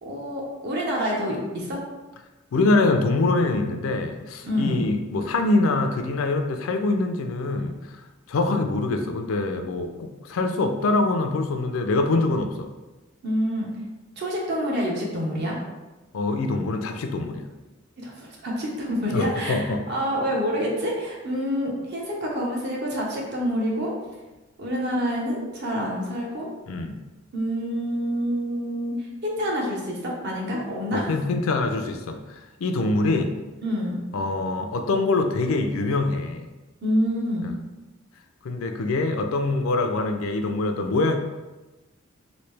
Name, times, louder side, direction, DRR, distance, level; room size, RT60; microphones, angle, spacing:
voice 1, 0.0-1.8 4.4-4.8 13.2-13.7 14.2-15.6 18.0-23.9 24.6-26.5 27.3-31.1 33.6-34.0 36.8-37.5, equal, 55° right, -2 dB, 0.8 m, -27 dB
voice 2, 2.5-8.0 8.3-12.7 16.1-17.5 19.1-19.8 26.7-26.9 30.9-32.2 32.6-33.3 34.1-36.5 37.4-37.5 38.4-41.2, left 2 dB, 80° left, 6 dB, 0.4 m, -24 dB
3.1 x 2.6 x 3.2 m, 1.1 s
head